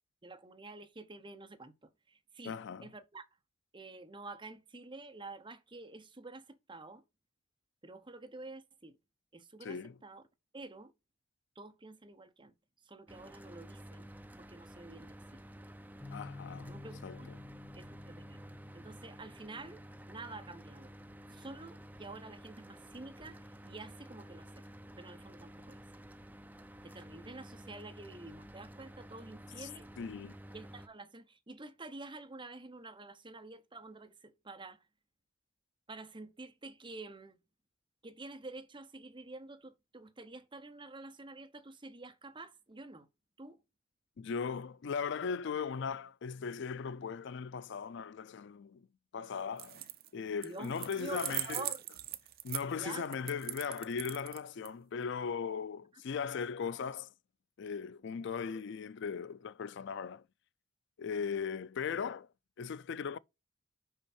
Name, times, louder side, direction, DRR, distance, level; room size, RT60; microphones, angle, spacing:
voice 1, 0.2-3.3 3.7-7.0 7.8-9.0 9.3-10.2 10.5-10.9 11.6-12.5 12.8-14.1 14.4-15.4 16.7-17.3 17.7-18.4 18.7-19.8 20.1-20.9 21.3-24.5 25.0-25.8 26.8-29.9 30.5-34.8 35.9-37.4 38.0-43.1 43.4-43.6 50.4-51.8 52.8-53.1, right 3 dB, 25° right, 0.9 m, -49 dB
voice 2, 2.5-2.9 9.6-9.9 16.1-16.7 17.0-17.4 29.6-29.7 30.0-30.4 44.2-48.9 49.1-49.8 50.1-51.6 52.4-57.1 57.6-60.2 61.0-62.3 62.6-63.2, left 6 dB, 60° left, 0.4 m, -38 dB
Mechanical fan, 13.1-30.9, equal, 10° right, 0.5 m, -52 dB
sound 1, 16.0-22.3, left 3 dB, 10° left, 1.2 m, -53 dB
sound 2, 49.5-50.1 50.4-54.7, right 13 dB, 50° right, 0.6 m, -40 dB
5.8 x 5.5 x 4.3 m
head